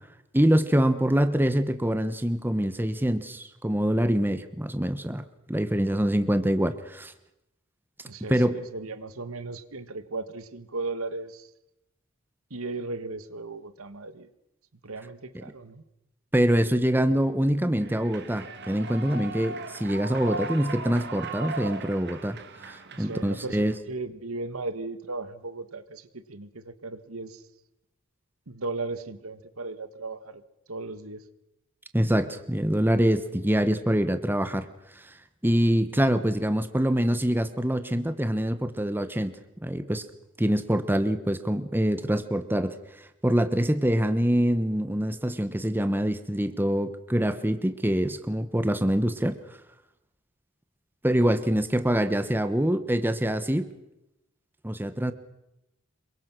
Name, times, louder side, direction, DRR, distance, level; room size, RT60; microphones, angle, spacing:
voice 1, 0.3-5.2 5.5-7.1 8.3-8.6 16.3-23.7 31.9-34.7 34.9-35.1 35.4-39.3 39.6-40.0 40.4-42.8 43.2-49.4 51.0-53.7 54.6-55.1, equal, 10° right, 11 dB, 1.1 m, -25 dB
voice 2, 8.1-11.5 12.5-14.3 14.8-15.8 22.9-27.4 28.5-30.4 30.7-31.2 35.9-36.0, right 3 dB, 80° right, 12 dB, 1.6 m, -36 dB
Human voice / Clapping / Cheering, 17.8-23.8, right 3 dB, 55° right, 2.1 m, -38 dB
27.0 x 23.5 x 6.2 m, 0.89 s
head